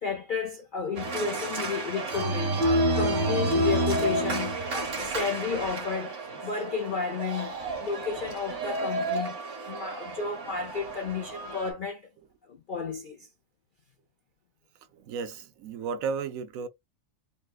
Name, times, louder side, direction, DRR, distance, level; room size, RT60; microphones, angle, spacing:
voice 1, 0.0-2.7 2.9-9.4 9.7-12.1 12.4-13.3, left 5 dB, 65° left, 0.5 m, -32 dB
Organ, 1.0-11.7, right 1 dB, 55° right, 1.8 m, -30 dB
voice 2, 14.9-16.7, right 5 dB, 75° right, 1.0 m, -33 dB
4.2 x 2.2 x 2.3 m
omnidirectional pair, 1.5 m